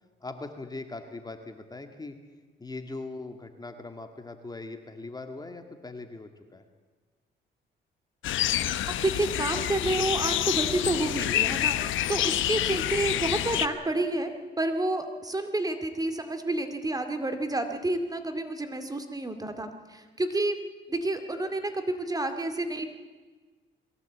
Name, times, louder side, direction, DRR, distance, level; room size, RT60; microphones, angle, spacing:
voice 1, 0.2-2.2 2.6-6.6, left 3 dB, 20° left, 6 dB, 2.0 m, -40 dB
sound 1, 8.2-13.7, left 12 dB, 80° left, 0.9 m, -27 dB
voice 2, 9.0-14.3 14.6-20.6 20.9-22.9, right 2 dB, 20° right, 7 dB, 2.3 m, -29 dB
22.0 x 16.0 x 8.6 m, 1.3 s
cardioid pair, 90°, 20 cm